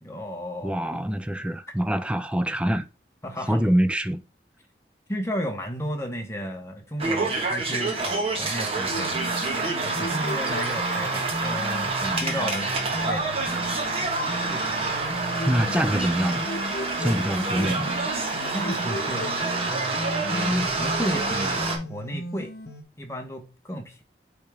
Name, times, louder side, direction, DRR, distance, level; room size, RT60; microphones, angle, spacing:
voice 1, 0.0-1.0 3.2-3.7 5.1-9.1 9.8-12.7 13.0-13.4 14.5-15.1 17.2-17.4 18.5-19.4 20.3-22.5 23.0-24.0, equal, 15° left, 1.1 m, -33 dB
voice 2, 0.6-2.9 3.5-4.2 15.5-16.4 17.0-18.0, equal, 5° right, 0.4 m, -24 dB
sound 1, 7.0-21.8, right 3 dB, 35° right, 1.3 m, -27 dB
sound 2, 8.9-22.8, left 1 dB, 70° left, 1.0 m, -35 dB
8.1 x 3.6 x 3.4 m
head